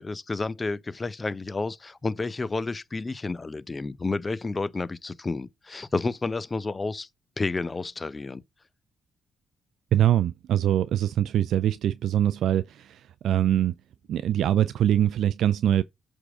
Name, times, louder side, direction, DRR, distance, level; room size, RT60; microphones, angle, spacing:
voice 1, 0.0-7.1 7.4-8.4, left 3 dB, 30° left, 0.6 m, -30 dB
voice 2, 9.9-13.7 14.1-15.8, right 11 dB, 70° right, 0.3 m, -23 dB
8.2 x 3.7 x 4.9 m
supercardioid pair, 60°, 0 cm